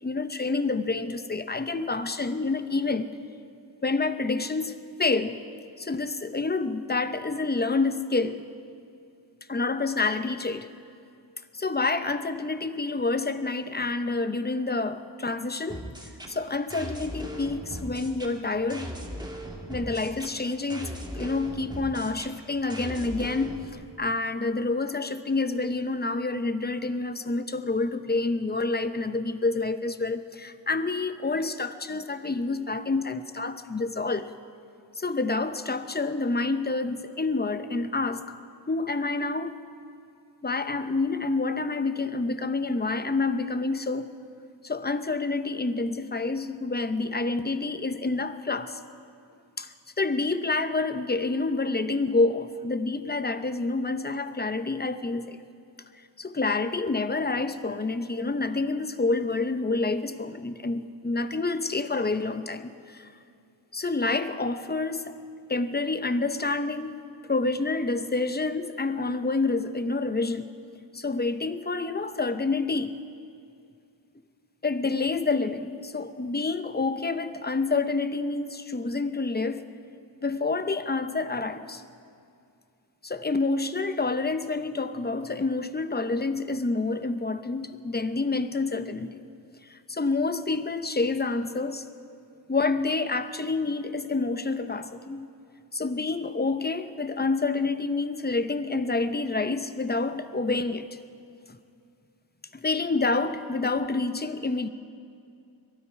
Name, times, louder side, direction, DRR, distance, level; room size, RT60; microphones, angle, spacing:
voice 1, 0.0-3.1 3.8-5.4 5.8-8.5 9.5-10.7 11.5-15.8 16.3-18.9 19.7-34.3 35.0-38.4 38.7-39.6 40.4-44.1 44.6-48.8 49.6-55.4 56.2-63.1 63.7-65.2 65.5-67.0 67.3-70.5 70.9-73.0 74.6-79.6 80.2-81.8 83.0-89.2 89.7-91.8 92.5-95.3 95.7-100.9 102.5-104.7, left 3 dB, 25° left, 11 dB, 0.8 m, -28 dB
sound 1, 15.7-23.7, right 1 dB, 10° right, 2.0 m, -39 dB
22.5 x 13.0 x 4.8 m, 2.5 s
wide cardioid pair, 65°, 42 cm